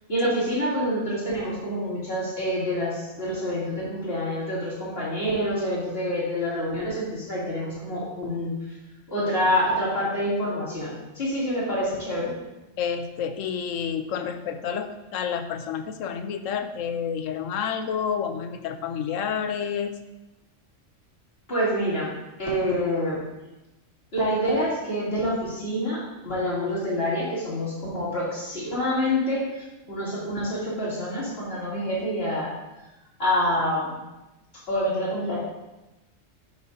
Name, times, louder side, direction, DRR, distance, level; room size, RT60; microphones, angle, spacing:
voice 1, 0.1-8.5 9.1-12.3 21.5-22.1 22.4-23.2 24.1-32.5 33.2-33.9 34.7-35.4, equal, 50° left, -8 dB, 3.2 m, -27 dB
voice 2, 12.8-19.9, left 7 dB, 80° left, 8 dB, 1.0 m, -29 dB
11.5 x 6.4 x 2.7 m, 1.0 s
omnidirectional pair, 1.3 m